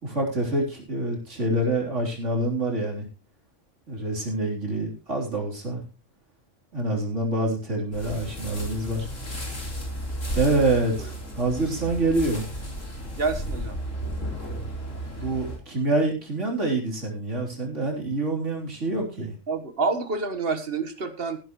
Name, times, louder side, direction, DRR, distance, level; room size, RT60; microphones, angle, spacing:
voice 1, 0.0-3.1 3.9-5.8 6.7-9.1 10.3-12.4 15.2-19.3, right 2 dB, 70° right, 0 dB, 4.0 m, -26 dB
sound 1, 7.9-15.6, equal, 80° left, 4.3 m, -33 dB
voice 2, 13.1-13.8 19.5-21.4, right 4 dB, 50° right, 9 dB, 1.6 m, -28 dB
15.0 x 12.0 x 3.1 m, 0.31 s
omnidirectional pair, 1.3 m